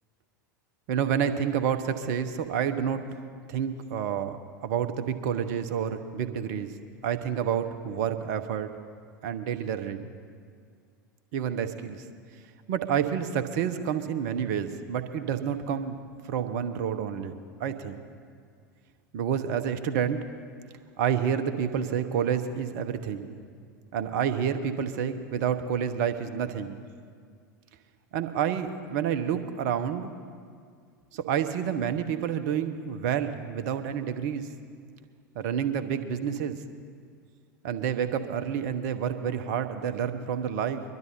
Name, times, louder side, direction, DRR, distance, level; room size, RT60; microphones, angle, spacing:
voice 1, 0.9-3.1 3.5-6.7 7.0-8.7 9.2-10.1 11.3-12.0 12.7-16.0 16.2-17.9 19.1-20.2 21.0-23.3 23.9-26.8 28.1-30.1 31.1-34.5 35.3-36.6 37.6-40.8, right 8 dB, 55° right, 9 dB, 1.1 m, -29 dB
21.5 x 12.0 x 4.3 m, 2.1 s
figure-of-eight pair, 85°, 11 cm